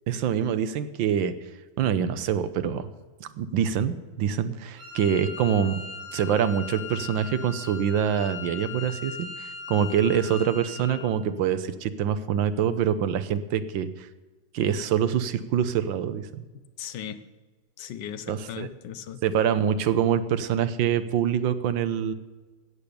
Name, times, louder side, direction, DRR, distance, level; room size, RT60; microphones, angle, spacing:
voice 1, 0.1-1.3 1.8-2.9 3.2-5.8 6.1-14.1 14.5-16.3 18.3-18.7 19.2-22.1, right 8 dB, 85° right, 12 dB, 1.6 m, -25 dB
Wind instrument woodwind instrument, 4.8-11.1, left 6 dB, 15° right, 4.1 m, -39 dB
voice 2, 16.5-17.2 17.8-19.2, left 9 dB, 70° left, 12 dB, 1.5 m, -38 dB
14.0 x 8.7 x 6.8 m, 1.3 s
omnidirectional pair, 2.0 m